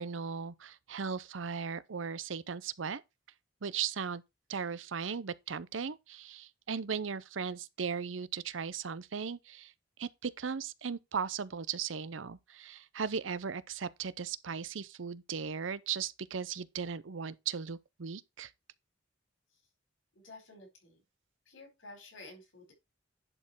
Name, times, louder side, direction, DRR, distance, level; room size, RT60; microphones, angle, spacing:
voice 1, 0.0-3.0 3.6-4.2 4.5-9.7 10.0-18.5, right 6 dB, 90° right, 0.7 m, -37 dB
voice 2, 20.1-21.0 21.5-22.7, left 2 dB, 90° left, 4.9 m, -52 dB
11.0 x 4.5 x 4.5 m
head